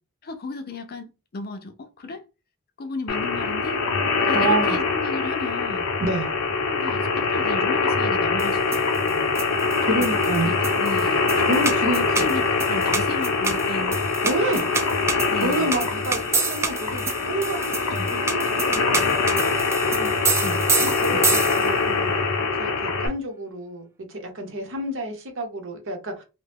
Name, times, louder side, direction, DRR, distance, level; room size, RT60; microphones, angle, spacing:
voice 1, 0.2-1.1 1.3-2.2 2.8-3.8 4.2-5.8 6.6-9.4 9.9-10.1 10.4-11.4 11.9-14.0 14.5-14.7 15.3-15.8 17.9-18.1 20.4-20.8 21.1-21.3, left 3 dB, 45° left, 0.5 m, -34 dB
sound 1, 3.1-23.1, left 4 dB, 85° left, 0.6 m, -23 dB
voice 2, 4.3-4.8 6.0-6.4 9.8-10.7 11.4-12.3 14.2-14.6 15.3-19.5 19.9-20.1 20.8-22.1 22.6-26.2, right 1 dB, 60° right, 0.9 m, -29 dB
sound 2, 8.4-21.9, right 4 dB, 10° right, 0.3 m, -29 dB
2.8 x 2.2 x 3.4 m
head